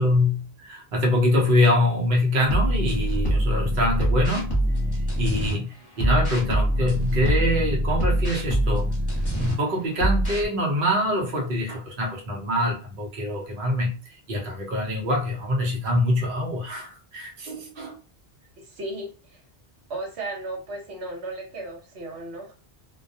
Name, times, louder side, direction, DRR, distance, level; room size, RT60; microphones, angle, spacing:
voice 1, 0.0-4.5 5.2-8.9 9.4-14.0 14.3-17.9, left 1 dB, 60° right, -1 dB, 0.8 m, -24 dB
sound 1, 2.5-5.5 5.9-9.5 9.9-10.5, equal, 25° left, 0.8 m, -24 dB
voice 2, 18.6-19.4 19.9-22.6, right 2 dB, 80° right, 1 dB, 1.1 m, -35 dB
2.3 x 2.1 x 2.6 m, 0.32 s
omnidirectional pair, 1.1 m